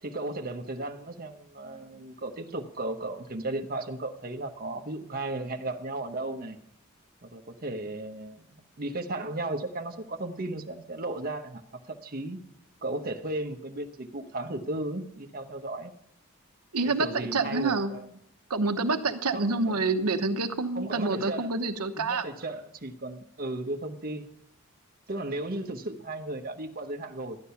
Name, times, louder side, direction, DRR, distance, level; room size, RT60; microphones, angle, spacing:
voice 1, 0.0-6.6 7.2-8.5 8.8-12.4 12.8-15.9 16.8-18.1 19.3-19.8 20.7-21.5 21.9-24.3 25.1-27.4, right 2 dB, 40° right, 5 dB, 1.0 m, -35 dB
voice 2, 16.7-17.9 18.5-22.2, right 3 dB, 90° right, 8 dB, 1.0 m, -27 dB
13.0 x 10.0 x 5.7 m, 0.75 s
head